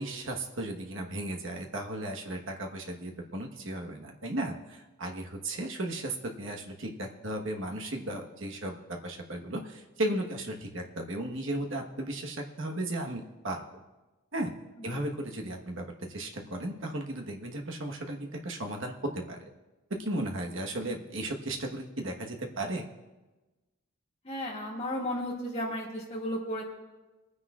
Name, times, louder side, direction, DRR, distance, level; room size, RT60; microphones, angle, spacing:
voice 1, 0.0-13.6 14.3-14.5 14.8-19.4 20.0-22.8, right 1 dB, 65° right, 2 dB, 1.3 m, -35 dB
voice 2, 24.2-26.6, left 1 dB, 30° left, -3 dB, 2.1 m, -34 dB
25.5 x 9.7 x 2.4 m, 1.1 s
head